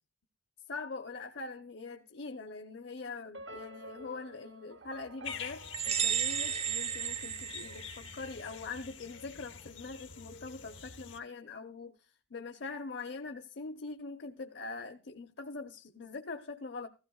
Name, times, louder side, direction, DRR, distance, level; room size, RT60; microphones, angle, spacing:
voice 1, 0.7-16.9, left 3 dB, 70° left, 6 dB, 0.8 m, -43 dB
sound 1, 3.3-7.7, right 1 dB, 85° right, 1.0 m, -50 dB
sound 2, 5.2-11.2, left 7 dB, 90° left, 1.2 m, -46 dB
sound 3, 5.7-8.3, right 9 dB, 35° right, 0.5 m, -33 dB
15.5 x 15.5 x 2.4 m, 0.33 s
head